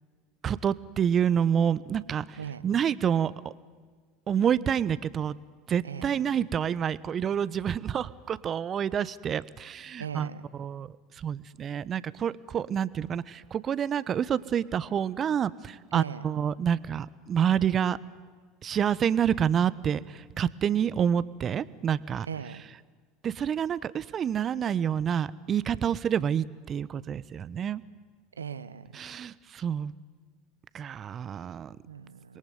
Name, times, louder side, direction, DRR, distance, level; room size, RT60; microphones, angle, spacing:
voice 1, 0.4-3.3 4.3-5.4 5.7-18.0 18.6-22.3 23.2-27.8 28.9-29.9 30.7-31.8 32.3-32.4, right 8 dB, 35° right, 18 dB, 1.1 m, -28 dB
voice 2, 5.8-6.2 10.0-10.4 15.9-16.2 22.3-22.6 28.4-28.9 31.9-32.4, right 7 dB, 90° right, 15 dB, 1.2 m, -38 dB
27.5 x 22.5 x 9.5 m, 1.5 s
hypercardioid pair, 75°, 0 cm